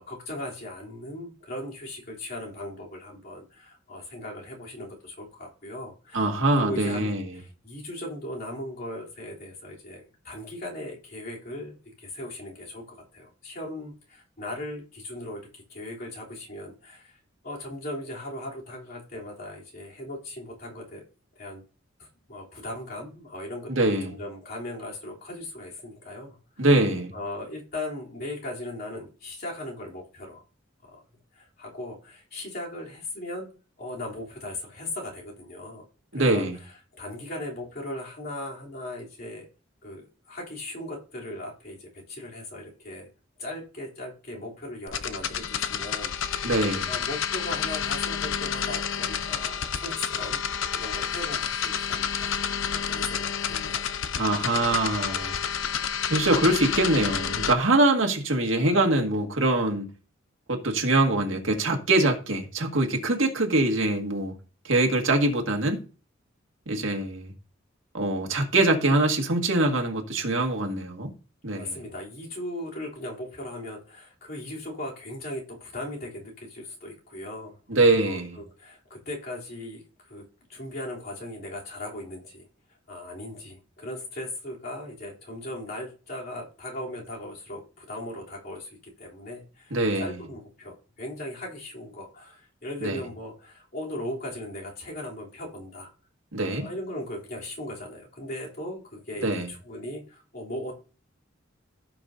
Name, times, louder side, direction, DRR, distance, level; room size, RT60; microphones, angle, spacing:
voice 1, 0.0-17.2 17.4-21.0 21.3-21.6 22.0-26.7 27.1-30.4 30.9-31.0 31.3-33.5 33.8-35.8 36.2-39.4 39.8-43.1 43.4-46.5 46.9-50.4 50.8-54.0 71.5-80.2 80.5-82.5 82.9-95.9 96.6-100.7, left 1 dB, 50° left, 3.2 m, -38 dB
voice 2, 6.1-7.2 23.7-24.1 26.6-27.1 36.1-36.5 46.4-46.9 54.2-55.3 56.1-59.9 60.5-64.3 64.6-65.8 66.7-67.3 67.9-71.1 71.4-71.7 77.7-78.3 89.7-90.1 92.8-93.0 96.3-96.7 99.2-99.5, right 2 dB, 85° right, 1.9 m, -23 dB
sound 1, 44.9-57.5, left 7 dB, 80° left, 0.7 m, -29 dB
16.0 x 6.0 x 2.7 m
head